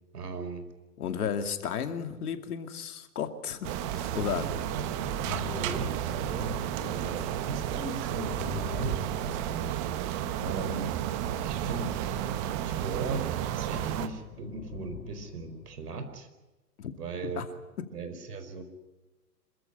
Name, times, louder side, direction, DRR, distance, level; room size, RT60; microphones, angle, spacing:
voice 1, 0.1-0.6 4.4-6.5 6.8-9.7 10.4-10.9 11.4-11.9 12.6-16.3 17.0-17.4 17.9-18.6, right 3 dB, 70° right, 9 dB, 4.8 m, -38 dB
voice 2, 1.0-4.5 6.8-6.9 10.4-10.7 16.8-16.9 17.4-17.5, left 7 dB, 65° left, 7 dB, 2.5 m, -34 dB
sound 1, 3.6-14.1, right 11 dB, 20° right, 0.7 m, -32 dB
sound 2, 4.9-7.1 7.8-10.4 11.0-13.2 13.7-15.8, left 6 dB, 30° left, 4.0 m, -44 dB
26.5 x 14.0 x 10.0 m, 1.1 s
hypercardioid pair, 140°, 49 cm